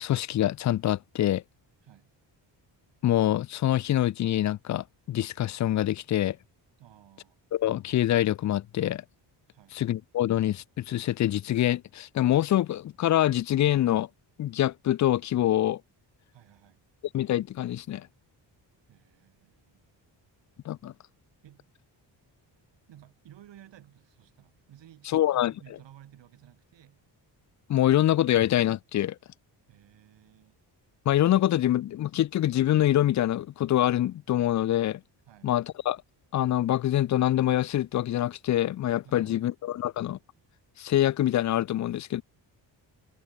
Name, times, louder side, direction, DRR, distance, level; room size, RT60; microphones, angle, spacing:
voice 1, 0.0-1.4 3.0-6.4 7.5-9.0 9.7-14.1 14.4-15.8 17.1-18.1 20.7-20.9 25.1-25.5 27.7-29.2 31.1-35.0 35.4-36.0 36.3-40.2 40.8-42.2, left 12 dB, 45° left, 0.4 m, -25 dB
voice 2, 1.8-2.1 6.8-7.5 9.5-9.8 16.3-16.8 18.9-19.9 21.4-21.7 22.9-27.0 29.7-30.6 35.3-35.5 39.0-39.5, right 12 dB, 75° right, 5.8 m, -55 dB
wide cardioid pair, 165°, 43 cm